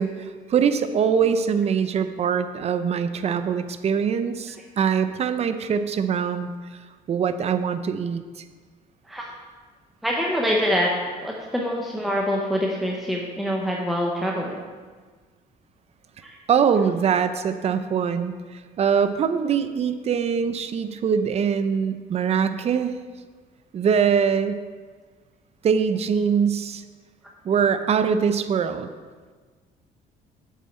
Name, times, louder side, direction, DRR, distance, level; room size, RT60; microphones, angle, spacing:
voice 1, 0.0-6.5 7.1-8.4 16.5-22.9 23.7-24.6 25.6-26.8 27.4-28.9, right 7 dB, 40° right, 11 dB, 0.5 m, -23 dB
voice 2, 10.0-10.9 11.2-14.6 16.2-16.4, equal, ahead, -2 dB, 0.8 m, -25 dB
7.5 x 7.2 x 4.3 m, 1.5 s
cardioid pair, 110°, 17 cm